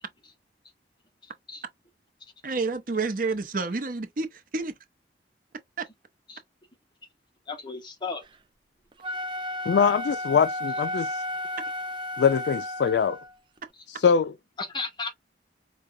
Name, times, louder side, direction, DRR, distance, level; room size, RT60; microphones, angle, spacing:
voice 1, 1.2-1.6 6.3-6.4 7.5-8.2 14.6-15.1, left 4 dB, 25° left, 0.9 m, -35 dB
voice 2, 2.4-4.7, right 3 dB, 50° right, 0.7 m, -29 dB
Wind instrument woodwind instrument, 8.9-13.3, left 1 dB, 25° right, 0.4 m, -33 dB
voice 3, 9.7-11.2 12.2-13.2 13.9-14.3, left 6 dB, 70° left, 0.3 m, -23 dB
4.8 x 2.2 x 2.6 m
head